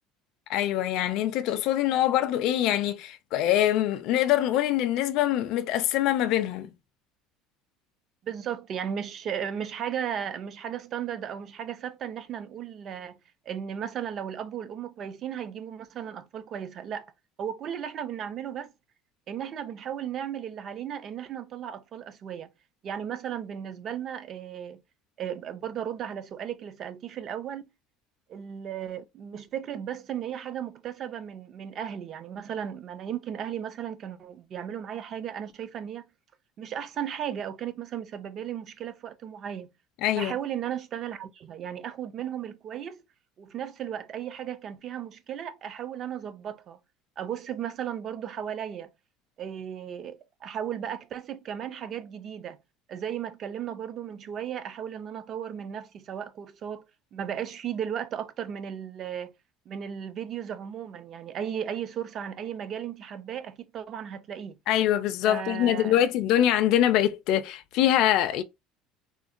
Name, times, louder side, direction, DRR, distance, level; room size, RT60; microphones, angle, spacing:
voice 1, 0.5-6.7 40.0-40.3 64.7-68.4, left 12 dB, 55° left, 0.3 m, -24 dB
voice 2, 8.2-13.2 13.5-17.1 17.4-18.7 19.3-22.5 22.8-24.8 25.2-27.6 28.3-36.0 36.6-39.7 40.2-43.0 43.4-46.8 47.2-48.9 49.4-52.6 52.9-56.8 57.1-59.3 59.7-64.6 65.2-66.1, right 9 dB, 35° right, 0.3 m, -35 dB
3.7 x 2.1 x 2.5 m
cardioid pair, 165°, 0 cm